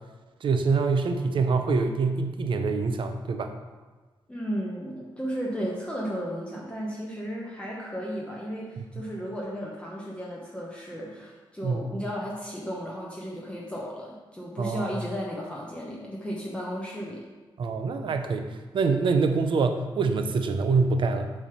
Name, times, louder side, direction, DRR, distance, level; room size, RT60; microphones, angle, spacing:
voice 1, 0.4-3.5 11.6-11.8 14.6-14.9 17.6-18.5 18.7-21.3, right 4 dB, 65° right, 6 dB, 0.6 m, -25 dB
voice 2, 4.3-17.2, equal, 10° left, -4 dB, 1.0 m, -34 dB
7.2 x 3.4 x 5.8 m, 1.3 s
wide cardioid pair, 110°, 9 cm